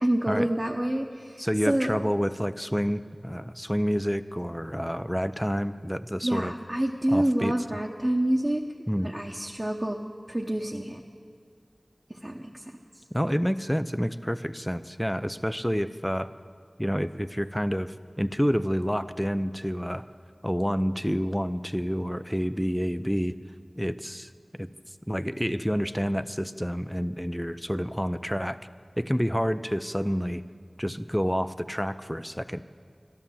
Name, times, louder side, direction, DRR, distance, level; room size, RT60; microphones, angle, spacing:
voice 1, 0.0-1.9 6.2-8.6 9.0-10.0 10.3-11.0 12.1-12.8, right 1 dB, 25° right, -1 dB, 0.9 m, -27 dB
voice 2, 1.4-6.5 7.1-7.5 8.9-9.1 13.1-16.3 16.8-20.0 20.4-23.4 23.8-24.3 24.6-24.7 25.1-28.6 29.0-30.4 30.8-32.6, equal, ahead, 12 dB, 0.5 m, -28 dB
12.5 x 11.5 x 7.2 m, 2.1 s
wide cardioid pair, 45°, 0 cm